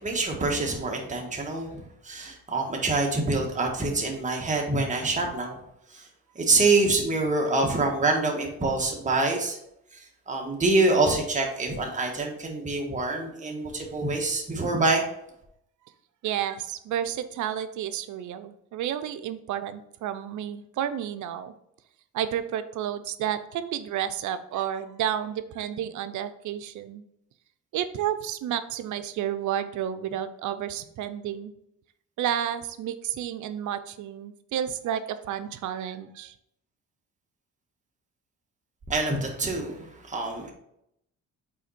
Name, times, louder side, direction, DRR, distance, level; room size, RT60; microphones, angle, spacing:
voice 1, 0.0-5.6 5.9-6.0 6.3-9.6 9.9-15.0 38.9-40.5, right 3 dB, 25° right, 0 dB, 1.5 m, -26 dB
voice 2, 16.2-21.5 22.1-27.0 27.7-31.5 32.2-36.3, right 10 dB, 75° right, 12 dB, 0.6 m, -31 dB
5.6 x 4.4 x 4.2 m, 0.77 s
cardioid pair, 90°, 30 cm